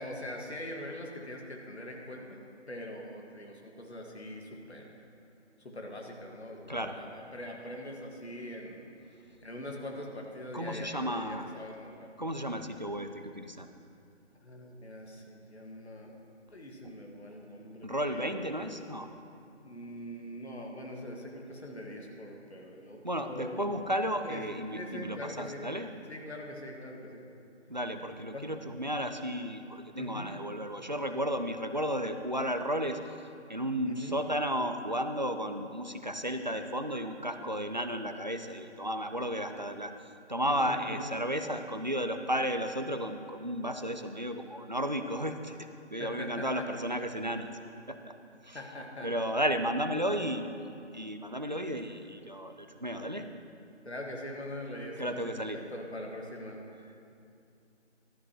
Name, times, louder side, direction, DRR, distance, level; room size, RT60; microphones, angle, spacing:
voice 1, 0.0-2.4 2.7-5.0 5.6-8.8 9.4-12.1 14.4-16.2 16.5-18.5 19.6-23.8 24.2-24.4 24.7-25.7 26.1-27.3 28.3-28.5 29.6-30.3 33.8-34.2 40.5-41.0 46.0-46.7 48.5-49.1 53.9-56.6, left 1 dB, 65° left, 0 dB, 1.8 m, -42 dB
voice 2, 10.5-11.5 12.2-13.7 17.8-19.1 23.0-25.9 27.7-33.0 33.5-47.5 47.9-48.1 48.4-48.6 49.0-50.5 50.9-53.3 55.0-55.6, equal, 40° right, 7 dB, 0.4 m, -33 dB
12.5 x 12.0 x 3.0 m, 2.5 s
figure-of-eight pair, 170°, 35 cm